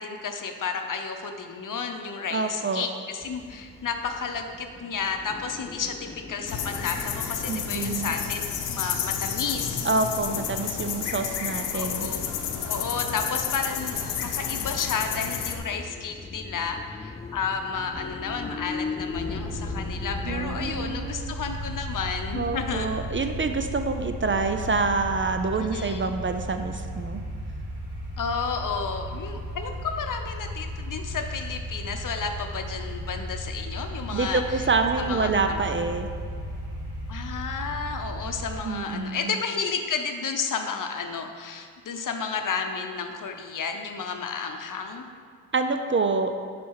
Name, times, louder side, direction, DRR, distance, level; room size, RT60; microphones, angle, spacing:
voice 1, 0.0-8.4 8.7-9.9 11.7-12.3 12.7-22.9 25.5-26.1 28.2-34.7 35.0-35.6 37.1-45.1, left 5 dB, 50° left, 5 dB, 0.9 m, -32 dB
voice 2, 2.3-2.8 7.5-8.1 9.8-12.1 20.2-21.3 22.3-27.2 34.1-36.1 38.6-39.3 45.5-46.3, right 4 dB, 30° right, 7 dB, 0.5 m, -27 dB
sound 1, 3.2-20.9, left 5 dB, 15° left, 0.3 m, -41 dB
sound 2, 6.5-15.6, left 8 dB, 85° left, 0.8 m, -30 dB
sound 3, 19.1-38.6, equal, 75° right, 2.0 m, -35 dB
10.5 x 4.2 x 4.8 m, 2.1 s
cardioid pair, 65°, 41 cm